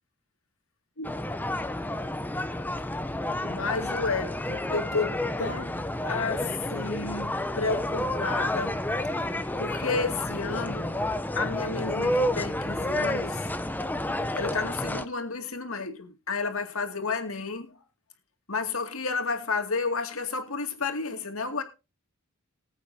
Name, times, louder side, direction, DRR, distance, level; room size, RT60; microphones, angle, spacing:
sound 1, 1.0-15.1, left 1 dB, 10° left, 0.6 m, -30 dB
voice 1, 3.4-8.8 9.6-11.0 11.3-13.4 14.3-17.8 18.5-21.6, left 4 dB, 70° left, 2.3 m, -31 dB
20.0 x 8.5 x 2.8 m
head